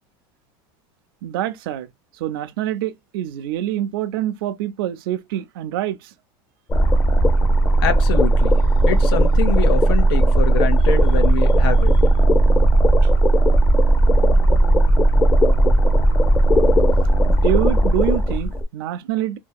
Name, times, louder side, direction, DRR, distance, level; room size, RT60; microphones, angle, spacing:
voice 1, 1.2-1.9 2.2-6.0 17.3-19.4, right 12 dB, 85° right, 0.5 m, -25 dB
sound 1, 6.7-18.6, right 1 dB, 20° left, 0.7 m, -16 dB
voice 2, 7.8-8.6 8.9-12.0, left 8 dB, 85° left, 0.9 m, -25 dB
2.8 x 2.7 x 2.2 m
supercardioid pair, 125°, 12 cm